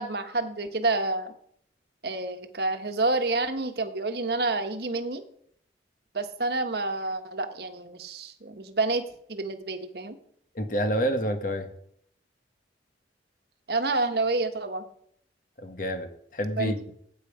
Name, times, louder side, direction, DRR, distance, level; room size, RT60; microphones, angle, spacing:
voice 1, 0.0-1.3 2.0-5.2 6.1-9.0 9.3-10.2 13.7-14.8 16.6-16.7, right 2 dB, 60° right, 7 dB, 1.4 m, -28 dB
voice 2, 10.5-11.7 15.6-16.9, equal, 45° left, 6 dB, 1.5 m, -28 dB
17.0 x 9.2 x 5.0 m, 0.69 s
head